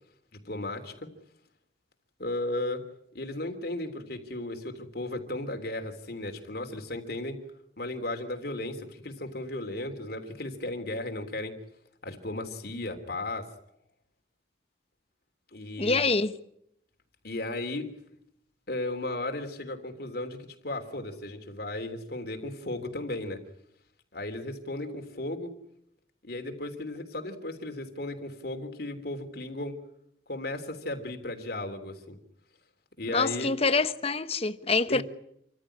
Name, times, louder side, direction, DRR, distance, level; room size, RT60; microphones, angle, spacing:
voice 1, 0.4-1.1 2.2-2.8 3.1-7.4 7.8-11.5 12.0-13.5 15.5-16.0 17.2-17.9 18.7-23.4 24.1-25.5 26.2-29.8 30.3-32.2 33.0-33.5 34.9-35.0, left 2 dB, 60° left, 3.3 m, -35 dB
voice 2, 15.8-16.3 33.1-35.0, left 3 dB, 35° left, 1.1 m, -26 dB
28.0 x 15.0 x 10.0 m
head